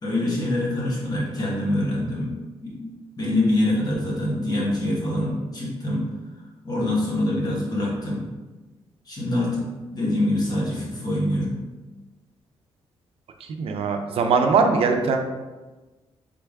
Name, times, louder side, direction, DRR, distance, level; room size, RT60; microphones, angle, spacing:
voice 1, 0.0-2.3 2.6-2.9 3.2-6.0 6.6-8.3 9.1-9.7 9.9-11.6, left 1 dB, 40° left, -4 dB, 1.5 m, -25 dB
voice 2, 13.4-15.2, right 5 dB, 70° right, 4 dB, 0.5 m, -21 dB
3.8 x 3.3 x 3.5 m, 1.2 s
cardioid pair, 105°, 10 cm